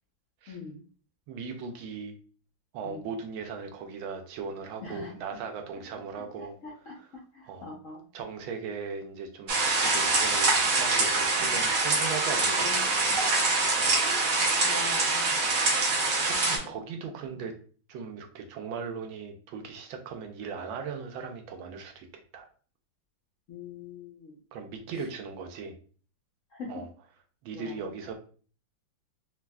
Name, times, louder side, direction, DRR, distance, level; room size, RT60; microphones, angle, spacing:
voice 1, 0.5-0.8 2.8-3.0 4.8-5.1 6.4-7.0 7.3-8.0 11.4-11.6 12.5-13.2 14.0-15.4 15.8-15.9 16.6-16.7 17.3-17.5 23.5-24.4 25.0-25.1 26.5-26.7 27.5-27.9, left 4 dB, 65° left, -3 dB, 0.7 m, -43 dB
voice 2, 1.3-2.1 2.7-6.6 7.4-7.7 8.1-12.7 13.8-14.0 16.2-17.5 17.9-22.1 22.3-22.5 24.5-25.8 26.7-26.9 27.4-28.1, right 5 dB, 90° right, 4 dB, 1.4 m, -38 dB
sound 1, 9.5-16.6, right 3 dB, 60° right, 1.3 m, -25 dB
4.3 x 2.3 x 2.2 m, 0.41 s
omnidirectional pair, 2.1 m